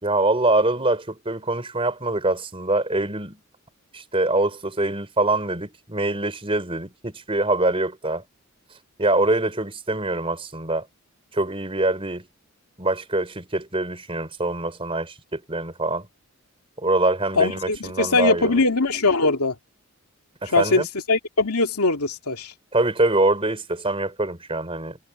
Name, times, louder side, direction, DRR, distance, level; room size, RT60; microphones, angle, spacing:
voice 1, 0.0-3.4 3.9-8.2 9.0-10.9 11.3-12.3 12.8-16.1 16.8-18.6 20.4-20.9 22.7-25.0, right 2 dB, 25° right, 4.5 m, -24 dB
voice 2, 17.4-19.5 20.5-22.5, left 3 dB, 90° left, 2.5 m, -21 dB
head